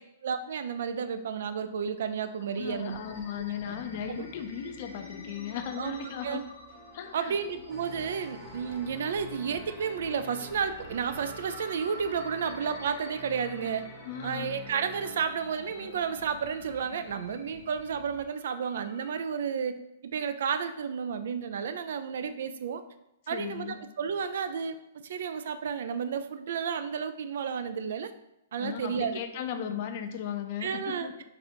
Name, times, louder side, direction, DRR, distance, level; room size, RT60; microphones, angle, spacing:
voice 1, 0.2-3.0 3.7-3.8 5.8-6.4 7.1-13.9 14.2-19.8 20.0-22.8 23.3-24.8 25.0-28.1 28.5-29.2 30.6-31.1, right 6 dB, 70° right, 10 dB, 0.3 m, -32 dB
sound 1, 2.0-19.2, left 2 dB, 75° left, 0.9 m, -49 dB
voice 2, 2.6-6.5 6.9-7.4 14.0-14.5 23.3-23.8 28.6-31.1, left 8 dB, 45° left, 7 dB, 0.5 m, -36 dB
sound 2, 2.6-18.3, equal, 35° right, 1.5 m, -55 dB
sound 3, 7.7-15.2, left 2 dB, 5° left, 0.8 m, -47 dB
4.2 x 2.6 x 4.2 m, 0.86 s
hypercardioid pair, 145°, 0 cm